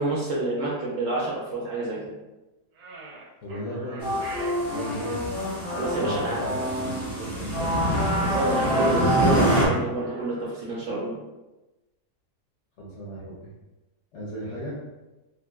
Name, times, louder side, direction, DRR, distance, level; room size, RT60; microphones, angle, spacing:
voice 1, 0.0-2.0 5.7-6.4 8.2-11.1, right 1 dB, 65° right, -5 dB, 0.8 m, -28 dB
sound 1, 2.8-5.2 8.4-10.5, right 3 dB, 85° right, 1.3 m, -41 dB
voice 2, 3.4-4.2 4.6-5.1 6.0-7.9 12.8-13.4 14.1-14.8, right 1 dB, 60° left, -5 dB, 0.8 m, -35 dB
sound 2, 4.0-9.7, equal, 15° left, 0.7 m, -25 dB
3.2 x 2.6 x 2.2 m, 1.1 s
omnidirectional pair, 1.7 m